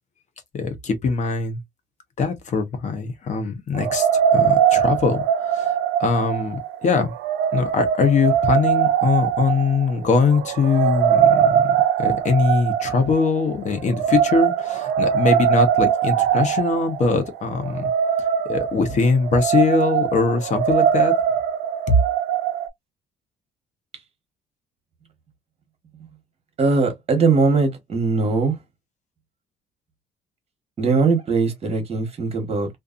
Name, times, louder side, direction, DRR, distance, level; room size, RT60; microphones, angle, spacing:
voice 1, 0.5-1.6 2.2-7.1 7.5-17.9 18.5-21.1 21.9-22.0, left 4 dB, 45° left, 0.9 m, -22 dB
sound 1, 3.7-22.7, right 9 dB, 80° right, 0.4 m, -21 dB
voice 2, 26.6-28.6 30.8-32.7, right 4 dB, 35° right, 1.2 m, -20 dB
2.5 x 2.4 x 2.4 m
cardioid pair, 110°, 17 cm